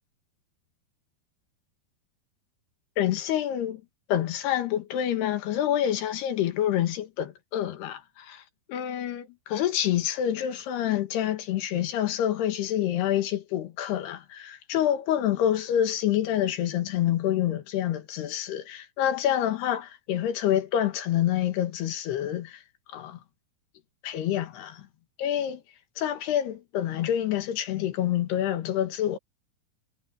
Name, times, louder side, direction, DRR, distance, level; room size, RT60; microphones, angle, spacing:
voice 1, 3.0-3.8 4.1-8.4 8.7-22.6 22.9-23.2 24.0-24.9 25.2-25.6 26.0-29.2, left 11 dB, 85° left, 3.8 m, -27 dB
omnidirectional pair, 4.6 m